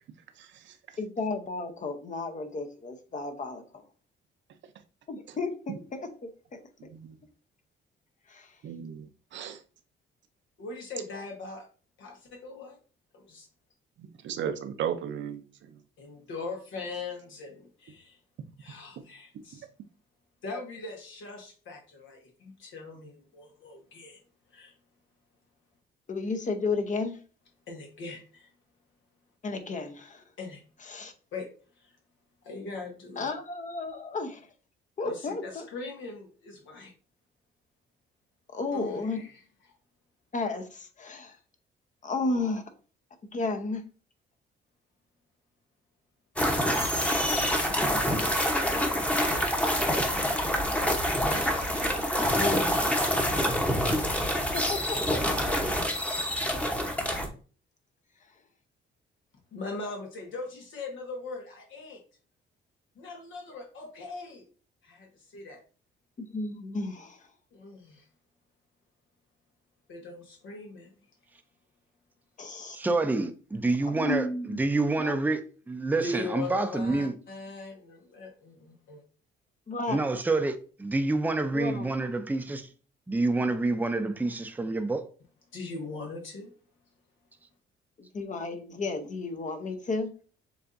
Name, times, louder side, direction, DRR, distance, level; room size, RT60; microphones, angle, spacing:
voice 1, 0.4-0.8 6.9-7.1 8.6-9.6 14.0-15.8, right 8 dB, 70° right, 0.7 m, -36 dB
voice 2, 1.0-3.8 5.1-6.1 6.5-6.9 8.3-8.6 26.1-27.2 29.4-30.2 30.8-31.1 33.2-34.5 35.0-35.7 38.5-39.2 40.3-41.4 42.0-42.6 43.3-43.8 54.5-55.4 66.2-67.3 72.4-72.8 73.9-74.6 75.0-75.2 79.7-80.0 81.5-81.9 88.0-90.1, left 3 dB, 40° left, 0.8 m, -33 dB
voice 3, 10.6-11.7 12.0-12.8 13.1-13.5 16.0-18.2 18.6-19.6 20.4-24.2 24.5-24.7 27.7-28.5 30.4-30.6 31.3-31.5 31.8-31.9 32.4-33.3 35.0-36.9 38.7-39.3 52.3-53.1 59.5-62.0 63.0-64.5 64.8-65.6 67.5-68.1 69.9-70.9 76.0-79.0 85.5-86.5, left 3 dB, 75° left, 1.2 m, -40 dB
sound 1, 46.4-57.3, equal, 5° left, 0.9 m, -26 dB
voice 4, 72.7-74.3 74.6-75.4 75.7-77.1 79.9-82.7 83.1-85.1, right 2 dB, 10° right, 0.5 m, -27 dB
6.9 x 2.5 x 2.6 m
cardioid pair, 90°, 20 cm